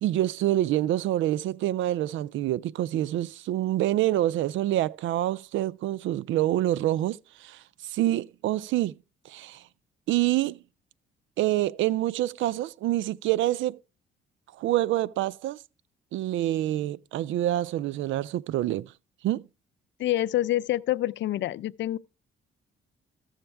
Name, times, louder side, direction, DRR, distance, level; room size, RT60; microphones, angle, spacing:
voice 1, 0.0-9.0 9.3-9.6 10.1-10.6 11.4-13.8 14.6-15.6 16.1-18.9 19.2-19.5, right 14 dB, 80° right, 0.4 m, -26 dB
voice 2, 20.0-22.0, left 14 dB, 65° left, 0.5 m, -27 dB
14.0 x 7.3 x 3.3 m
cardioid pair, 90°, 20 cm